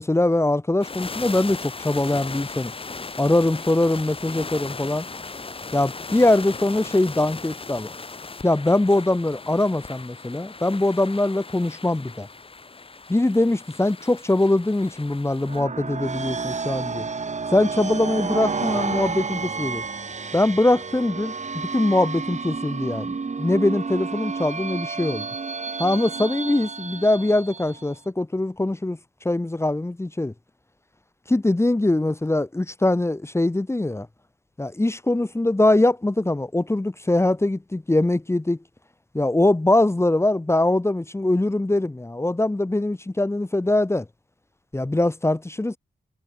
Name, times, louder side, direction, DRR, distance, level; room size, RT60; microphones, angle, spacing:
voice 1, 0.0-2.7 3.2-5.1 5.7-7.9 8.4-12.3 13.1-17.1 17.5-19.8 20.3-25.3 25.8-29.0 29.2-30.3 31.3-34.1 34.6-38.6 39.1-44.0 44.7-45.8, left 2 dB, 15° left, 1.3 m, -22 dB
sound 1, 0.8-15.6, left 4 dB, 30° left, 1.7 m, -37 dB
sound 2, 15.4-27.9, right 4 dB, 45° right, 3.1 m, -30 dB
wide cardioid pair, 120°, 17 cm